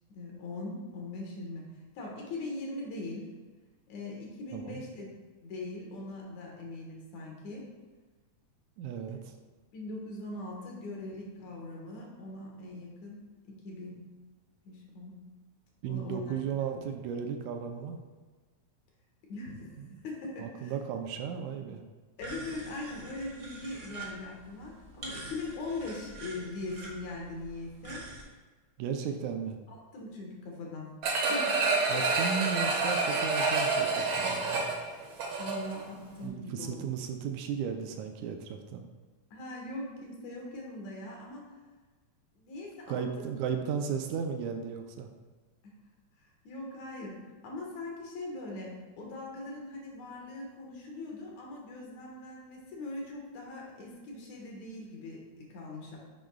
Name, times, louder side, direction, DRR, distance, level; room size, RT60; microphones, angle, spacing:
voice 1, 0.1-1.6 2.0-3.3 3.9-5.1 5.4-7.7 9.7-13.9 14.6-15.2 15.9-16.4 16.8-16.9 19.3-19.7 20.0-20.7 22.2-28.0 29.7-30.9 31.2-31.5 35.4-36.9 39.3-41.5 42.4-43.3 45.6-45.7 46.4-47.2 47.4-56.0, left 2 dB, 70° left, -1 dB, 2.8 m, -41 dB
voice 2, 4.5-4.8 8.8-9.3 15.8-18.0 19.8-20.0 20.4-21.8 28.8-29.6 31.9-34.8 36.2-38.9 42.9-45.1, right 7 dB, 85° right, 5 dB, 2.0 m, -35 dB
sound 1, 22.2-28.2, right 2 dB, 40° right, 1.4 m, -46 dB
sound 2, 31.0-35.8 36.2-36.3, right 3 dB, 60° right, 1.5 m, -28 dB
10.5 x 6.2 x 2.3 m, 1.3 s
omnidirectional pair, 3.4 m